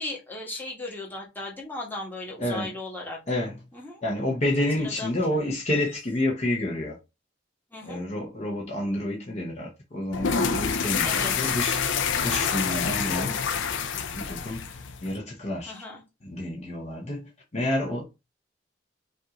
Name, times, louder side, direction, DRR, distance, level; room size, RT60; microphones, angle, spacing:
voice 1, 0.0-3.2 3.7-4.0 4.7-5.1 7.7-8.0 11.0-11.5 15.7-16.0, left 2 dB, 10° left, 1.3 m, -36 dB
voice 2, 2.4-2.7 3.3-3.6 4.0-7.0 7.8-11.8 12.2-13.4 14.0-14.7 15.0-15.8 16.2-18.0, left 1 dB, 40° left, 0.9 m, -29 dB
sound 1, 10.1-15.2, left 6 dB, 70° left, 0.5 m, -27 dB
5.3 x 2.5 x 3.0 m
head